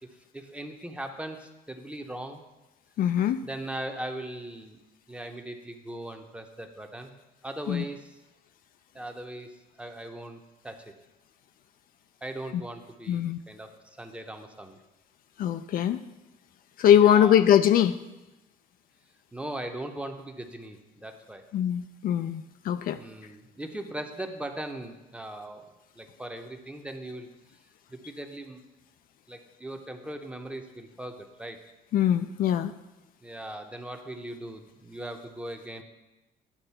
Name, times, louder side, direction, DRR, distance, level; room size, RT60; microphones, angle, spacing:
voice 1, 0.0-2.4 3.4-4.8 5.1-7.1 7.4-8.1 8.9-10.9 12.2-14.8 17.0-17.4 19.3-21.5 22.9-27.3 27.9-28.6 29.3-31.6 33.2-35.8, right 1 dB, 5° right, 5 dB, 0.8 m, -39 dB
voice 2, 3.0-3.4 7.7-7.8 13.1-13.4 15.4-16.0 16.8-18.0 21.5-23.0 31.9-32.7, left 10 dB, 60° left, 10 dB, 0.4 m, -22 dB
10.0 x 3.9 x 5.6 m, 1.0 s
cardioid pair, 110°, 17 cm